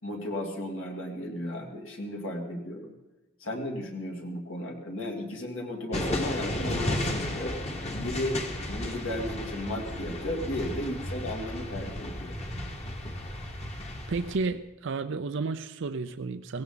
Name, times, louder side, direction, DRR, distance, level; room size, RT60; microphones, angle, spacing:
voice 1, 0.0-2.9 3.4-7.6 7.9-8.4 8.7-12.4, left 1 dB, 65° left, 1 dB, 2.6 m, -34 dB
sound 1, 5.9-14.4, left 1 dB, 30° left, 1.7 m, -34 dB
voice 2, 14.1-16.6, right 4 dB, 60° right, 10 dB, 0.5 m, -32 dB
17.5 x 16.0 x 4.0 m, 1.1 s
head